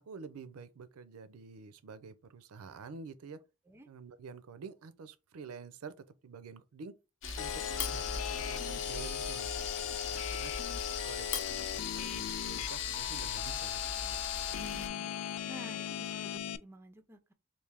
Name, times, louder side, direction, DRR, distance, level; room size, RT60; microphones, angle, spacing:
voice 1, 0.0-3.4 3.9-5.9 6.2-7.0 7.3-10.5 11.0-14.2, right 5 dB, 90° right, 0.5 m, -49 dB
Camera, 7.2-14.9, left 4 dB, 60° left, 0.7 m, -40 dB
sound 1, 7.4-16.6, left 10 dB, 85° left, 0.3 m, -38 dB
voice 2, 14.6-15.1 15.5-17.3, equal, 10° right, 0.3 m, -52 dB
3.2 x 2.6 x 3.5 m
head